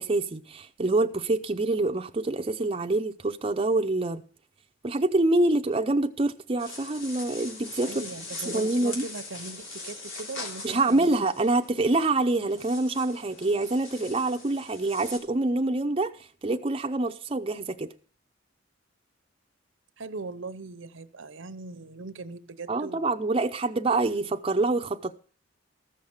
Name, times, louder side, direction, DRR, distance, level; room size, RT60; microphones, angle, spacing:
voice 1, 0.0-4.2 4.8-7.9 8.5-9.1 10.6-16.1 16.4-17.9 22.7-25.1, right 2 dB, 30° right, 0.6 m, -26 dB
sound 1, 6.6-15.2, left 3 dB, 85° left, 3.2 m, -42 dB
voice 2, 7.9-11.3 20.0-23.3, right 3 dB, 75° right, 0.8 m, -40 dB
14.5 x 6.5 x 7.1 m
head